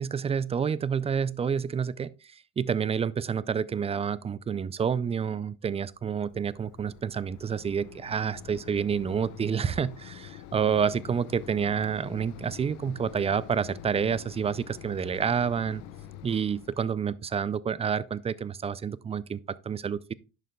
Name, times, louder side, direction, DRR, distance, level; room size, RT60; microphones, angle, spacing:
voice 1, 0.0-2.1 2.6-15.8 16.2-20.1, right 7 dB, 15° right, 0.3 m, -29 dB
Mechanisms, 5.9-16.8, left 11 dB, 85° left, 0.9 m, -46 dB
11.0 x 6.4 x 2.3 m
hypercardioid pair, 75°, 38 cm